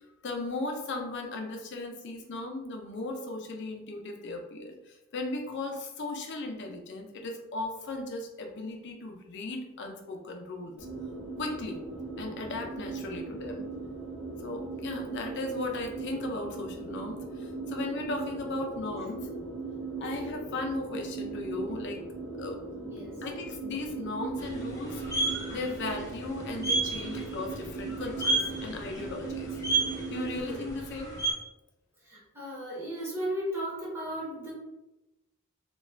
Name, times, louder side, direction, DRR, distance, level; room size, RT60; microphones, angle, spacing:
voice 1, 0.2-10.7 11.4-11.8 12.2-13.6 14.4-19.3 20.0-22.0 22.3-22.6 23.2-29.6 30.1-31.2, left 2 dB, 55° left, 3 dB, 0.5 m, -37 dB
sound 1, 10.8-30.4, right 3 dB, 70° right, 1.0 m, -38 dB
voice 2, 22.7-23.1 30.4-30.6 32.1-34.5, equal, 10° right, -6 dB, 0.9 m, -35 dB
sound 2, 24.4-31.3, right 3 dB, 15° left, 0.6 m, -32 dB
2.4 x 2.2 x 3.1 m, 0.99 s
head